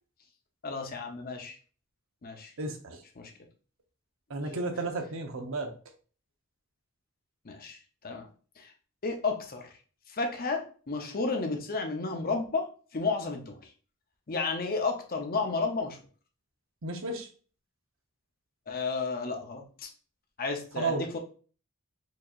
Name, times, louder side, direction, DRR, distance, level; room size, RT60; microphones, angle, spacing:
voice 1, 0.6-1.6 2.2-2.5 3.2-3.3 7.4-7.8 8.0-8.3 8.6-8.7 9.0-9.7 10.1-12.7 12.9-13.6 14.3-16.0 18.7-19.9 20.4-21.2, left 4 dB, 45° left, 4 dB, 0.7 m, -32 dB
voice 2, 2.6-3.0 4.3-5.7 16.8-17.3 20.8-21.0, right 3 dB, 70° right, 6 dB, 0.7 m, -32 dB
4.7 x 2.8 x 2.4 m, 0.39 s
head